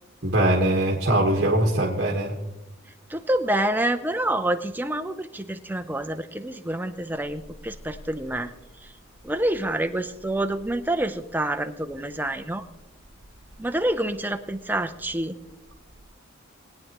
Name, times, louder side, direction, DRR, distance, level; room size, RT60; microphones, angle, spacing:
voice 1, 0.2-2.4, right 1 dB, 55° right, 0 dB, 1.4 m, -22 dB
voice 2, 3.1-8.5 8.8-8.9 9.2-12.6 13.6-15.4, right 1 dB, 10° right, 8 dB, 0.6 m, -27 dB
21.0 x 9.4 x 3.0 m, 0.99 s
head